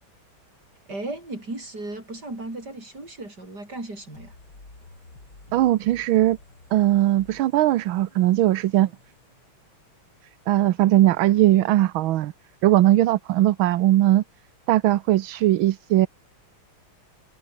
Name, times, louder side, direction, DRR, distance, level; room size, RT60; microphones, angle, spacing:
voice 1, 0.9-4.3, right 2 dB, 50° right, 8.3 m, -35 dB
sound 1, 4.1-9.8, left 2 dB, 55° left, 6.6 m, -51 dB
voice 2, 5.5-6.4 6.7-8.9 10.5-12.3 12.6-14.2 14.7-16.1, right 14 dB, 75° right, 1.6 m, -19 dB
omnidirectional pair, 2.3 m